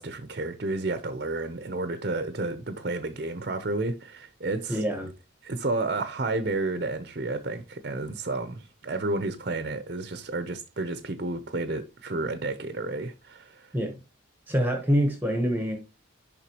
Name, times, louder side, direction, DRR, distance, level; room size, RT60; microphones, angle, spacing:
voice 1, 0.0-4.8 5.4-13.7, right 2 dB, 50° right, 0.6 m, -31 dB
voice 2, 4.7-5.1 13.7-14.0 14.5-15.8, equal, 10° right, 0.9 m, -25 dB
11.0 x 3.7 x 2.9 m
head